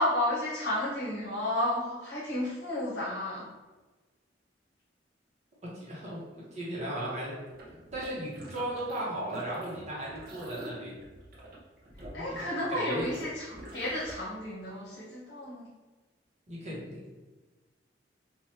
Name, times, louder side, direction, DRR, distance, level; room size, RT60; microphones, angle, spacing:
voice 1, 0.0-3.5 12.1-15.7, left 1 dB, 75° left, -6 dB, 0.9 m, -32 dB
voice 2, 5.6-7.4 7.7-10.9 12.1-12.4 12.7-13.1 16.5-17.2, right 1 dB, 40° right, -6 dB, 1.1 m, -36 dB
sound 1, 7.5-9.0 9.3-14.1, right 1 dB, 55° right, 0.7 m, -46 dB
3.2 x 2.5 x 2.8 m, 1.2 s
head